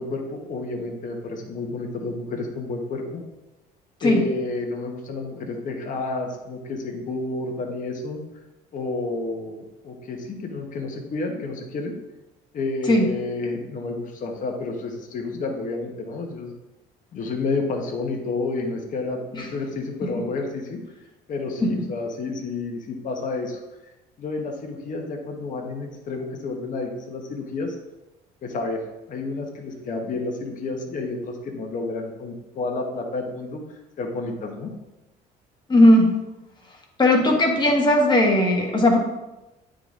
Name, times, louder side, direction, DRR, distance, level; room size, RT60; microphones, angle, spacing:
voice 1, 0.0-3.2 4.0-8.2 8.7-9.6 9.8-11.9 12.5-16.5 17.1-20.8 21.3-23.6 24.2-27.8 28.4-28.8 29.1-33.6 34.0-34.7, left 3 dB, 50° left, 2 dB, 1.2 m, -30 dB
voice 2, 35.7-36.1 37.0-39.0, left 1 dB, 25° left, 1 dB, 1.5 m, -17 dB
9.0 x 3.8 x 3.7 m, 1.0 s
cardioid pair, 110°, 17 cm